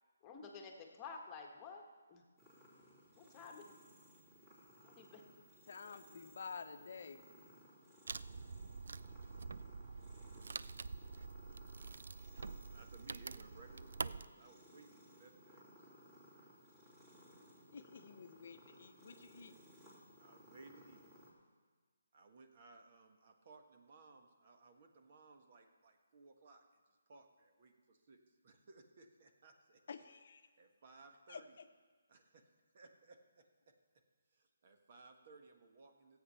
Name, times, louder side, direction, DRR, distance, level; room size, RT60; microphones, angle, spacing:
voice 1, 0.2-2.2 3.2-3.7 4.8-5.2 5.5-6.0, left 5 dB, 20° left, 2 dB, 1.4 m, -52 dB
sound 1, 2.4-21.3, equal, 15° right, 2.9 m, -62 dB
voice 2, 5.7-7.2 17.7-19.5 29.9-30.4 31.3-31.4, left 5 dB, 55° left, 8 dB, 0.8 m, -50 dB
Wood, 8.1-14.3, right 4 dB, 65° right, 0.3 m, -46 dB
voice 3, 12.5-16.5 20.1-21.0 22.1-29.8 30.6-31.6 32.1-32.4 32.7-33.4 34.3-36.2, right 3 dB, 45° right, 4 dB, 1.4 m, -61 dB
14.5 x 8.2 x 5.7 m, 1.4 s
hypercardioid pair, 155°, 0 cm